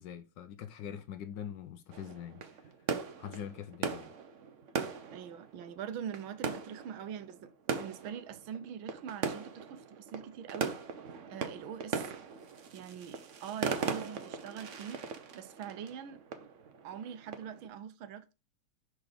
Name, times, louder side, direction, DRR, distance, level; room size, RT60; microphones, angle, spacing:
voice 1, 0.0-4.1, left 9 dB, 70° left, 1.2 m, -44 dB
sound 1, 1.9-17.7, right 6 dB, 55° right, 0.8 m, -39 dB
voice 2, 5.1-7.5 7.8-10.8 11.3-12.1 12.7-15.0 15.3-16.5 16.8-18.3, right 8 dB, 75° right, 1.5 m, -43 dB
6.1 x 4.9 x 5.0 m
omnidirectional pair, 2.3 m